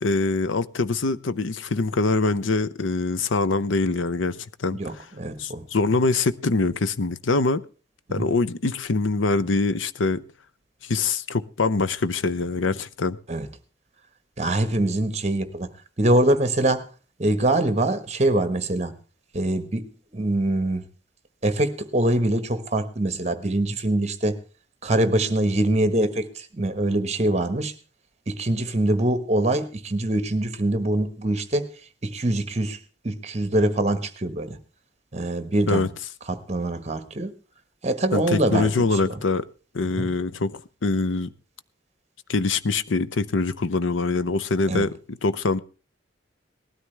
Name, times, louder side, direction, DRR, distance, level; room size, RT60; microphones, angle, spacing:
voice 1, 0.0-5.1 5.4-7.6 8.1-10.2 10.8-13.2 35.7-35.9 38.1-39.5 39.7-41.3 42.3-45.6, left 3 dB, 85° left, 0.7 m, -24 dB
voice 2, 4.7-5.6 8.1-8.3 13.3-13.5 14.4-15.7 16.0-16.9 17.2-19.0 19.3-19.9 20.1-20.8 21.4-24.4 24.8-27.7 28.3-31.7 32.0-32.8 33.0-34.6 35.1-35.9 36.3-37.3 37.8-39.2 40.0-40.1 44.7-44.9, right 1 dB, 35° right, 1.3 m, -24 dB
19.0 x 13.0 x 3.3 m
head